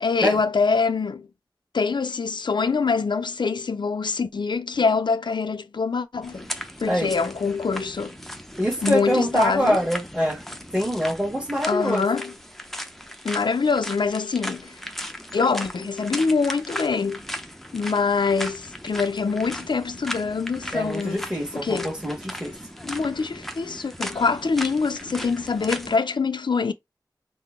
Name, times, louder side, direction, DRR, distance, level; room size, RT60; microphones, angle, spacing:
voice 1, 0.0-1.3 1.7-6.5 6.8-8.2 8.8-9.8 11.7-12.3 13.2-14.8 15.3-17.2 17.7-21.3 21.5-21.9 22.8-26.7, left 4 dB, 80° left, 0.4 m, -24 dB
sound 1, 6.2-26.0, equal, 5° left, 0.6 m, -37 dB
voice 2, 8.6-10.4 10.7-12.1 20.7-22.5, equal, 10° right, 1.3 m, -24 dB
3.8 x 2.0 x 3.5 m
wide cardioid pair, 65°, 8 cm